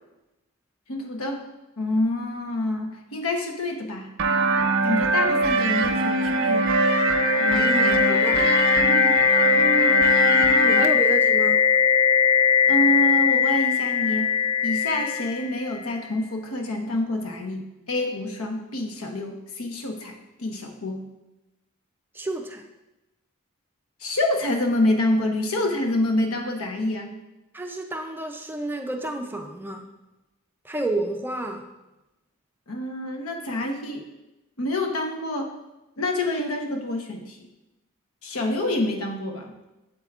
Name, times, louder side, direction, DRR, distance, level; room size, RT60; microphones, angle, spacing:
voice 1, 0.9-1.4 1.8-4.1 4.8-6.6 12.7-14.3 14.6-21.1 24.0-27.1 32.7-34.0 34.6-35.5 36.0-37.4 38.2-39.5, left 1 dB, 80° left, 3 dB, 1.0 m, -27 dB
sound 1, 4.2-10.9, right 3 dB, 65° right, 0.5 m, -22 dB
sound 2, 6.1-16.0, left 7 dB, 35° left, 0.8 m, -21 dB
voice 2, 7.4-8.5 9.8-11.7 22.1-22.6 27.5-29.9 30.6-31.7, right 1 dB, 10° right, 4 dB, 0.4 m, -31 dB
7.9 x 7.6 x 2.4 m, 1.0 s
head